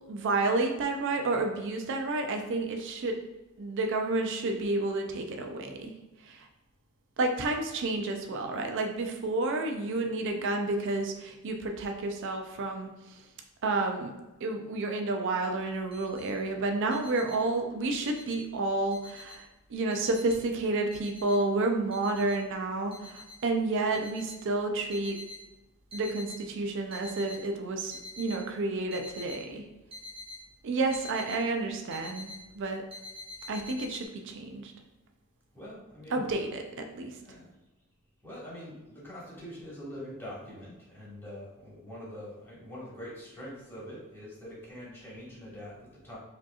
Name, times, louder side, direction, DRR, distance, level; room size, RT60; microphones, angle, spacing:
voice 1, 0.1-3.2 3.6-5.9 6.2-6.5 7.2-13.3 13.6-14.1 14.4-25.2 25.9-29.7 30.6-32.8 33.5-34.7 36.1-37.2, right 2 dB, 60° right, 4 dB, 0.4 m, -30 dB
sound 1, 15.7-16.3 16.7-18.5 18.9-19.6 19.9-21.6 21.9-22.4 22.9-23.4 23.9-25.4 25.8-26.4 26.8-27.4 27.8-28.4 28.9-31.4 31.7-32.5 32.9-34.1, left 2 dB, 25° right, 0.8 m, -46 dB
voice 2, 35.5-36.2 37.1-37.5 38.2-46.2, equal, 10° left, -7 dB, 1.4 m, -44 dB
4.9 x 2.8 x 2.3 m, 1.1 s
head